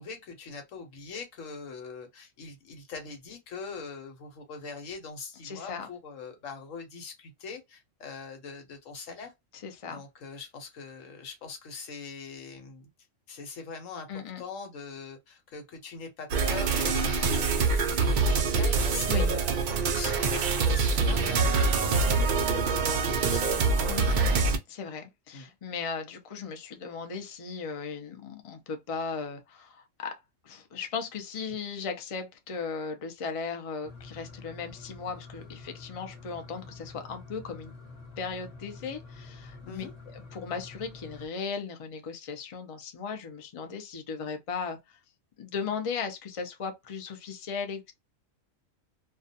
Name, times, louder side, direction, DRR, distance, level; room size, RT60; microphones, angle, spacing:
voice 1, 0.0-9.3 9.9-12.9 13.3-14.1 14.4-23.8 25.3-25.5 39.6-39.9, left 5 dB, 75° left, 1.2 m, -42 dB
voice 2, 5.4-5.9 9.6-10.0 14.1-14.4 19.1-19.3 23.9-30.2 30.4-37.7 38.2-39.8 40.1-45.0 45.4-47.9, left 5 dB, 55° left, 0.3 m, -37 dB
sound 1, 16.3-24.6, right 4 dB, 75° right, 0.4 m, -25 dB
sound 2, 33.8-41.3, left 3 dB, 35° left, 0.8 m, -47 dB
2.3 x 2.3 x 2.6 m
omnidirectional pair, 1.4 m